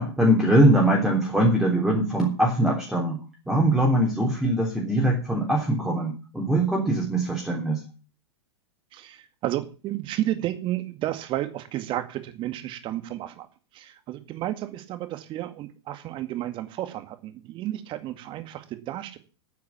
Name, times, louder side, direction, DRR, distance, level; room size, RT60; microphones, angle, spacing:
voice 1, 0.0-3.2 3.5-7.8, right 1 dB, 5° right, -1 dB, 3.5 m, -22 dB
voice 2, 8.9-13.5 13.7-19.2, right 14 dB, 35° right, 10 dB, 2.1 m, -32 dB
9.5 x 9.5 x 7.3 m, 0.35 s
figure-of-eight pair, 100°, 14 cm